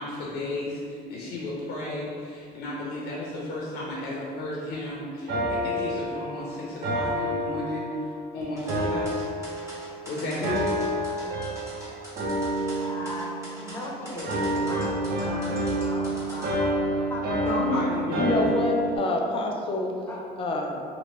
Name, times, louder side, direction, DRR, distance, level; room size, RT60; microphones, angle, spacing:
voice 1, 0.0-9.3 10.1-10.7 17.5-18.4, left 2 dB, 80° left, -5 dB, 0.6 m, -33 dB
sound 1, 5.3-8.2 8.7-10.0 10.4-11.8 12.2-13.9 14.3-19.0, right 1 dB, 65° right, 0.5 m, -28 dB
sound 2, 8.6-16.5, equal, 15° right, 1.1 m, -43 dB
voice 2, 12.4-17.8 18.2-18.3 20.0-20.2, left 1 dB, 10° left, -6 dB, 0.8 m, -37 dB
voice 3, 18.1-20.0 20.4-20.8, left 2 dB, 30° left, 2 dB, 0.4 m, -26 dB
2.9 x 2.5 x 3.0 m, 2.3 s
cardioid pair, 110°, 17 cm